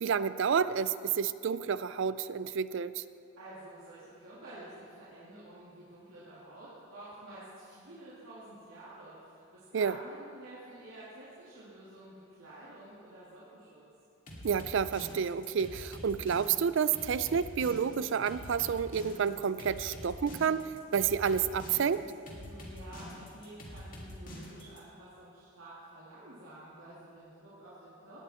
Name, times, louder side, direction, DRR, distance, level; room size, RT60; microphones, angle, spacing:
voice 1, 0.0-3.0 9.7-9.9 14.4-20.7 20.9-22.0, right 7 dB, 60° right, 15 dB, 0.4 m, -30 dB
voice 2, 3.4-13.8 22.4-28.2, right 1 dB, 85° right, -10 dB, 2.6 m, -50 dB
sound 1, 14.3-24.8, equal, 40° left, 2.2 m, -46 dB
17.5 x 9.9 x 4.3 m, 2.5 s
head